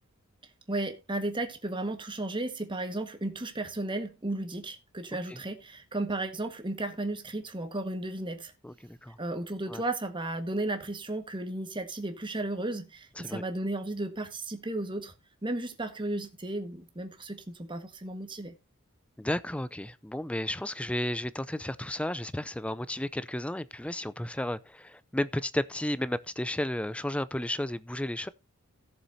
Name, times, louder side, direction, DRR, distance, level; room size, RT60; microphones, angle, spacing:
voice 1, 0.7-8.5 9.2-15.1 15.4-18.6, right 2 dB, 25° right, 1.5 m, -34 dB
voice 2, 8.6-9.2 9.7-9.8 13.2-13.4 19.2-28.3, left 1 dB, 5° left, 0.4 m, -33 dB
17.5 x 7.1 x 2.7 m
head